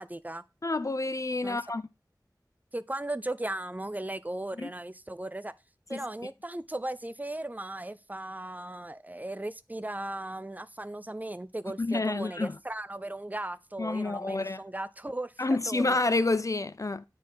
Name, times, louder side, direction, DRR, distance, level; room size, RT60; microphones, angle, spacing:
voice 1, 0.0-0.4 1.4-1.6 2.7-5.5 5.9-16.0, right 1 dB, 20° right, 0.5 m, -37 dB
voice 2, 0.6-1.8 4.6-4.7 5.9-6.0 11.8-12.6 13.8-14.6 15.4-17.0, left 2 dB, 45° left, 0.4 m, -28 dB
9.4 x 4.2 x 3.9 m
wide cardioid pair, 50°, 7 cm